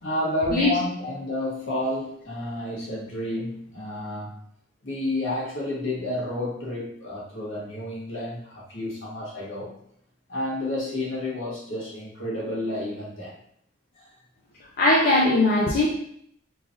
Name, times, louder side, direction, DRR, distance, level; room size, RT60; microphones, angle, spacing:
voice 1, 0.0-4.4 4.8-9.8 10.3-13.3 13.9-14.1, left 1 dB, 65° left, -6 dB, 1.4 m, -30 dB
voice 2, 14.8-15.9, left 2 dB, 50° left, -3 dB, 0.5 m, -19 dB
3.2 x 2.5 x 3.6 m, 0.69 s
head